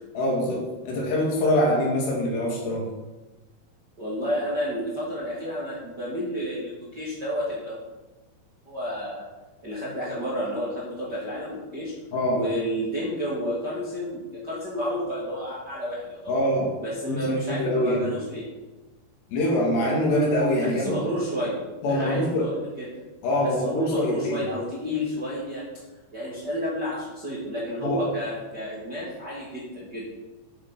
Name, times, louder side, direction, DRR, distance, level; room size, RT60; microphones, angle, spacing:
voice 1, 0.1-2.9 12.1-12.4 16.3-16.7 17.1-18.1 19.3-20.9 21.8-22.5 23.2-24.4 27.8-28.0, left 1 dB, 70° left, -2 dB, 4.5 m, -24 dB
voice 2, 4.0-7.8 8.7-9.2 9.6-11.9 12.3-16.2 16.8-18.5 20.6-22.9 23.4-25.6 26.1-30.1, equal, 30° right, -6 dB, 2.1 m, -31 dB
10.5 x 8.0 x 5.5 m, 1.1 s
omnidirectional pair, 5.2 m